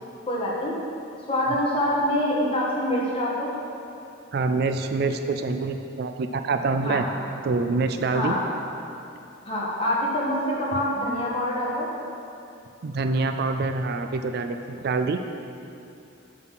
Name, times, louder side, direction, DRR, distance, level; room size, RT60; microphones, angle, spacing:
voice 1, 0.3-0.7 1.3-3.5 6.8-7.0 8.0-8.4 9.4-11.9, left 1 dB, 30° left, -5 dB, 1.5 m, -25 dB
voice 2, 4.3-7.1 7.4-8.3 12.8-15.2, right 3 dB, 50° right, 8 dB, 0.3 m, -26 dB
7.4 x 6.0 x 5.9 m, 2.7 s
head